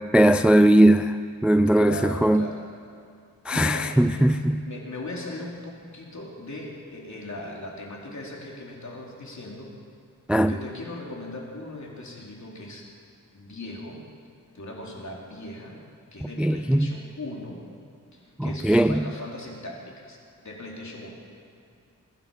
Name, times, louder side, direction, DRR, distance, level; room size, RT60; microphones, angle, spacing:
voice 1, 0.1-1.2 1.4-2.4 3.5-4.6 10.3-10.5 16.4-16.9 18.4-18.9, right 1 dB, 5° right, 0.3 m, -19 dB
voice 2, 1.7-2.6 3.5-9.7 10.4-12.9 13.3-14.0 14.5-15.8 16.1-17.6 18.1-20.2 20.4-21.1, left 1 dB, 50° left, 3.3 m, -38 dB
21.0 x 11.0 x 5.5 m
wide cardioid pair, 75°, 35 cm